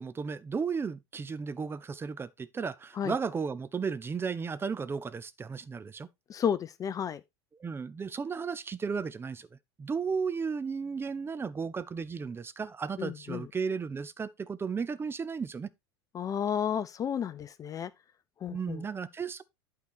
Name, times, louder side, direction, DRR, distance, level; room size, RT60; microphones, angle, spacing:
voice 1, 0.0-6.1 7.6-15.7 18.5-19.4, right 5 dB, 15° right, 0.7 m, -34 dB
voice 2, 6.3-7.2 13.0-13.5 16.1-17.9 18.4-18.8, left 8 dB, 25° left, 0.6 m, -32 dB
11.5 x 4.8 x 4.2 m
figure-of-eight pair, 80°, 14 cm